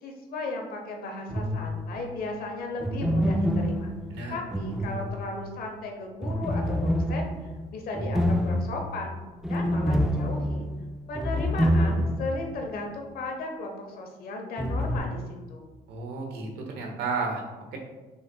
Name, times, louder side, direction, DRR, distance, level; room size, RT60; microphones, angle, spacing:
voice 1, 0.0-3.9 4.3-7.3 7.7-9.2 9.5-10.7 11.1-15.2 15.5-15.7, left 2 dB, 60° left, 2 dB, 0.9 m, -35 dB
sound 1, 1.3-2.0 2.8-5.6 6.2-12.4 12.7-12.8 14.6-15.0, equal, ahead, 0.3 m, -27 dB
voice 2, 15.9-17.4, right 4 dB, 75° right, 1 dB, 1.0 m, -32 dB
5.5 x 3.8 x 2.3 m, 1.2 s
cardioid pair, 110°, 17 cm